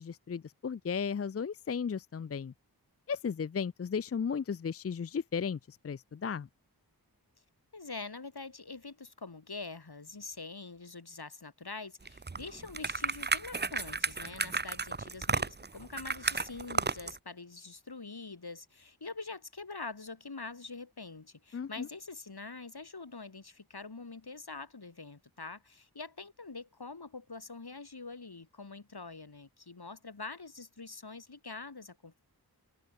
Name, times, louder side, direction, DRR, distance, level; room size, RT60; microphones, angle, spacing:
voice 1, 0.0-2.5 3.1-6.5 21.5-21.9, left 6 dB, 40° left, 0.4 m, -35 dB
voice 2, 7.7-32.2, left 3 dB, 75° left, 3.8 m, -45 dB
sound 1, 12.0-17.2, right 4 dB, 25° right, 0.7 m, -33 dB
open air
wide cardioid pair, 50°, 39 cm